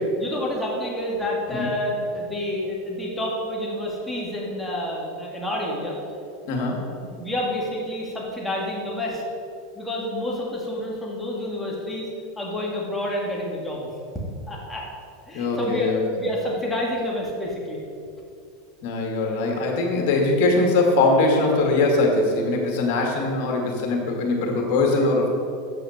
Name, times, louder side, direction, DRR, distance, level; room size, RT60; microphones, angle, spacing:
voice 1, 0.2-5.9 6.7-6.8 7.2-9.2 9.7-12.1 12.4-13.9 14.5-14.9 15.3-15.9 16.2-17.8, left 1 dB, 10° left, -3 dB, 2.2 m, -29 dB
voice 2, 6.5-6.8 15.3-16.0 18.8-25.3, left 2 dB, 65° left, 1 dB, 2.2 m, -21 dB
8.0 x 5.8 x 6.5 m, 2.5 s
hypercardioid pair, 105°, 0 cm